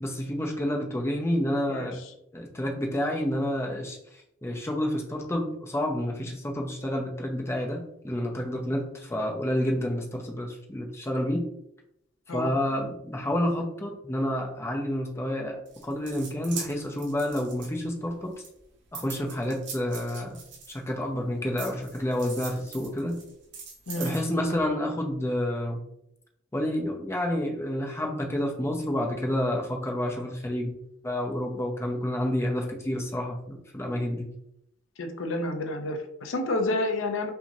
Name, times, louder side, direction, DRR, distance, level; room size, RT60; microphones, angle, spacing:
voice 1, 0.0-2.0 2.3-4.0 4.4-11.5 12.3-18.3 18.9-20.4 20.7-23.2 24.0-25.8 26.5-30.7 31.0-34.3, left 1 dB, 15° left, 1 dB, 0.5 m, -29 dB
sound 1, 15.7-18.1 18.4-21.1 21.6-24.2, right 5 dB, 60° right, 1.2 m, -41 dB
voice 2, 35.0-37.3, left 2 dB, 80° left, 5 dB, 0.6 m, -29 dB
5.7 x 2.8 x 2.7 m, 0.77 s
head